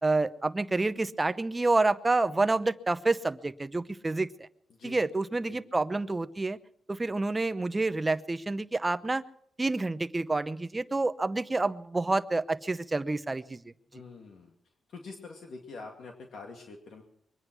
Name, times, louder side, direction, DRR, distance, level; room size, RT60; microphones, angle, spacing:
voice 1, 0.0-4.5 4.8-6.6 6.9-9.2 9.6-13.6, right 2 dB, 20° right, 12 dB, 0.8 m, -28 dB
voice 2, 13.9-14.5 14.9-17.0, left 4 dB, 70° left, 1 dB, 2.2 m, -45 dB
24.0 x 9.7 x 6.2 m, 0.70 s
cardioid pair, 105°, 0 cm